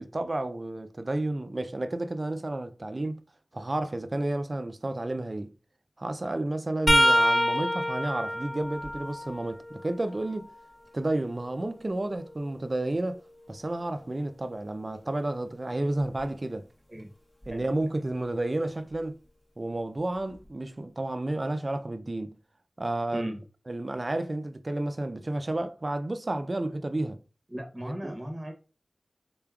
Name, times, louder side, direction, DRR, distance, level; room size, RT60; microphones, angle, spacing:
voice 1, 0.0-3.2 3.5-5.5 6.0-10.5 10.9-13.2 13.5-16.7 17.5-19.2 19.6-22.4 22.8-23.3 23.7-27.2 28.0-28.1, right 2 dB, 40° right, 0.4 m, -31 dB
sound 1, 6.9-10.6 11.2-13.1 16.0-16.2 17.4-17.6 18.9-19.0, equal, 15° left, 0.6 m, -28 dB
voice 2, 23.1-23.4 27.5-28.5, equal, 25° right, 0.8 m, -36 dB
3.8 x 3.5 x 2.3 m
wide cardioid pair, 75°, 0 cm